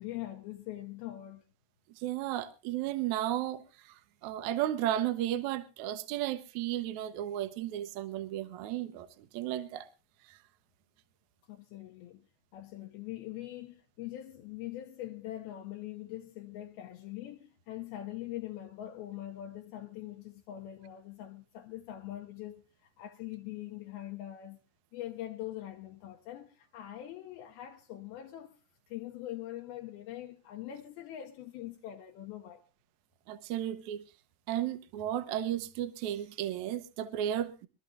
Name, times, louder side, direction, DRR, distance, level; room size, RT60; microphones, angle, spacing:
voice 1, 0.0-1.4 11.5-12.3 12.5-24.6 24.9-28.6 28.9-32.6, left 13 dB, 75° left, 2.6 m, -43 dB
voice 2, 2.0-3.9 4.2-9.9 10.3-10.4 33.3-34.0 34.5-37.7, right 12 dB, 75° right, 1.7 m, -34 dB
25.0 x 13.0 x 2.5 m
omnidirectional pair, 4.8 m